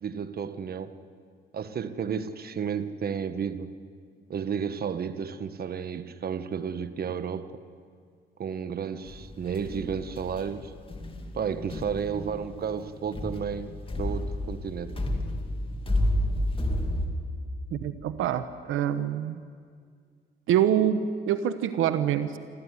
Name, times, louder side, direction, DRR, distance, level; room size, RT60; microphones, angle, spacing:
voice 1, 0.0-0.9 1.5-3.7 4.3-7.5 8.4-10.7 11.3-14.9, right 7 dB, 50° right, 12 dB, 1.2 m, -32 dB
sound 1, 9.1-17.1, left 1 dB, 25° left, 2.8 m, -31 dB
voice 2, 17.7-19.4 20.5-22.4, right 10 dB, 85° right, 11 dB, 1.0 m, -26 dB
26.5 x 14.0 x 9.7 m, 2.1 s
cardioid pair, 90°, 20 cm